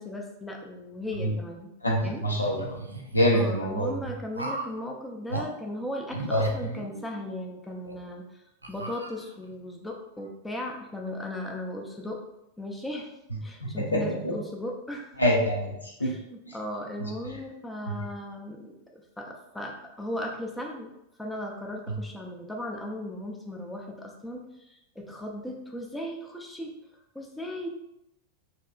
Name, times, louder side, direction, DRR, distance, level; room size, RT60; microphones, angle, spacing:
voice 1, 0.0-1.7 2.0-2.2 3.3-8.2 8.7-12.2 12.6-13.1 13.4-15.2 16.0-20.9 21.2-26.7 27.1-27.7, left 1 dB, 5° left, 0 dB, 0.4 m, -37 dB
voice 2, 1.8-2.8 3.1-3.9 6.3-6.5 13.6-14.3 15.2-15.7 16.0-16.1, equal, 80° left, -2 dB, 0.6 m, -25 dB
sound 1, 2.0-3.4 4.3-4.8 5.3-5.5 6.1-7.3 7.8-7.9 8.6-9.5, right 2 dB, 85° right, 0.3 m, -37 dB
3.0 x 2.8 x 2.3 m, 0.84 s
figure-of-eight pair, 90°, 0 cm